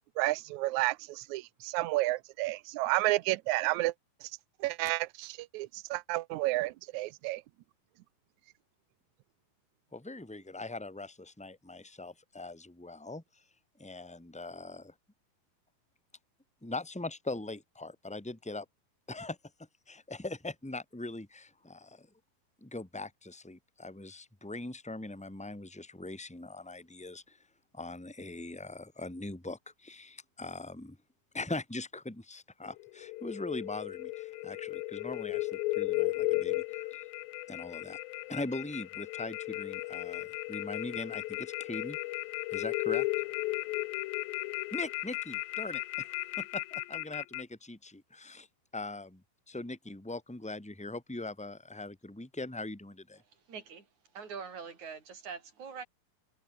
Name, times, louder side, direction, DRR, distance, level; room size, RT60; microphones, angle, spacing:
voice 1, 0.2-3.9 4.6-7.4, right 19 dB, 80° right, 1.7 m, -31 dB
voice 2, 9.9-13.2 13.8-14.9 16.6-18.6 19.1-19.4 19.9-22.1 22.6-27.4 27.7-31.0 31.3-37.0 37.5-38.0 38.3-42.0 42.5-43.1 44.7-48.5 48.7-49.2 49.5-53.2, left 2 dB, 5° left, 0.7 m, -41 dB
sound 1, 32.6-47.4, left 20 dB, 90° left, 2.4 m, -35 dB
voice 3, 53.5-53.9 54.1-55.8, right 6 dB, 55° right, 6.3 m, -43 dB
omnidirectional pair, 4.1 m